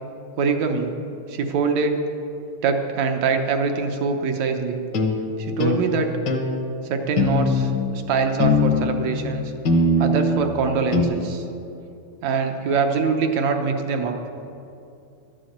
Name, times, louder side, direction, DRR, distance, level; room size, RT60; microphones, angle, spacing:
voice 1, 0.4-0.9 1.3-2.0 2.6-4.8 5.4-6.1 6.9-9.5 10.0-11.4 12.2-14.1, right 5 dB, 70° right, 5 dB, 1.9 m, -23 dB
sound 1, 4.9-5.2 5.6-5.8 6.3-6.5 7.2-7.8 8.4-9.1 9.6-10.4 10.9-11.0, left 2 dB, 55° left, 1.3 m, -20 dB
12.0 x 9.1 x 7.8 m, 2.7 s
omnidirectional pair, 3.6 m